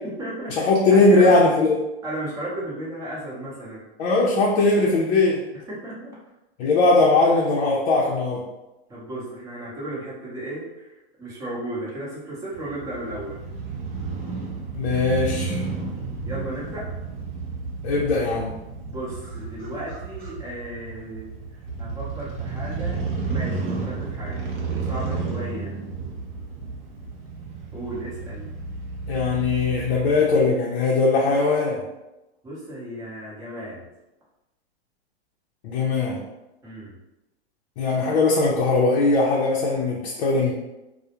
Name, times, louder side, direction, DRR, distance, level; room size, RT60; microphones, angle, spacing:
voice 1, 0.0-1.6 2.0-3.9 5.5-6.2 6.6-6.8 8.9-13.4 14.9-15.0 16.2-16.9 18.9-25.7 27.7-28.5 32.4-33.9 36.6-36.9, right 1 dB, 10° right, -8 dB, 0.7 m, -35 dB
voice 2, 0.6-1.7 4.0-5.4 6.6-8.4 14.7-15.6 17.8-18.5 29.1-31.8 35.6-36.2 37.8-40.5, left 3 dB, 65° left, -3 dB, 0.5 m, -20 dB
Crow / Motorcycle, 12.5-30.4, right 4 dB, 50° right, 0.7 m, -32 dB
2.3 x 2.0 x 2.8 m, 0.98 s
hypercardioid pair, 140°, 32 cm